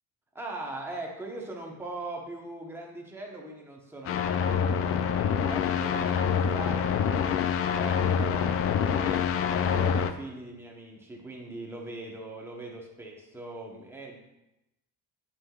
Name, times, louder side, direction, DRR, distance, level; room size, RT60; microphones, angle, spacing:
voice 1, 0.3-7.2 7.7-14.2, right 2 dB, 5° right, -1 dB, 0.9 m, -41 dB
sound 1, 4.1-10.1, left 7 dB, 45° left, 0.4 m, -26 dB
8.6 x 5.6 x 2.3 m, 0.91 s
cardioid pair, 155°, 33 cm